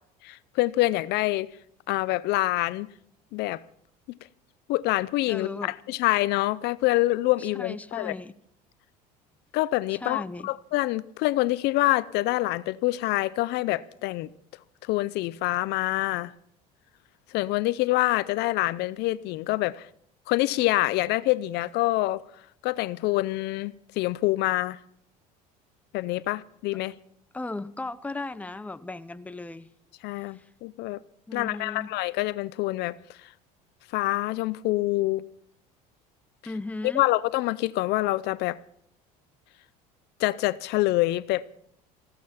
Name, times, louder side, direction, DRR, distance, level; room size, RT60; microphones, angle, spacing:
voice 1, 0.2-1.5 1.9-2.9 3.3-3.6 4.1-4.2 4.7-8.1 9.5-14.3 14.8-16.3 17.3-19.9 20.3-22.2 22.6-24.8 25.9-26.9 30.0-31.0 31.3-33.3 33.9-35.2 36.9-38.6 40.2-41.4, left 18 dB, 65° left, 0.6 m, -26 dB
voice 2, 5.3-5.7 7.4-8.3 9.9-10.5 27.3-29.7 30.3-30.5 31.3-31.9 36.4-37.1, left 2 dB, 10° left, 0.7 m, -36 dB
15.5 x 13.5 x 5.7 m
supercardioid pair, 90°, 19 cm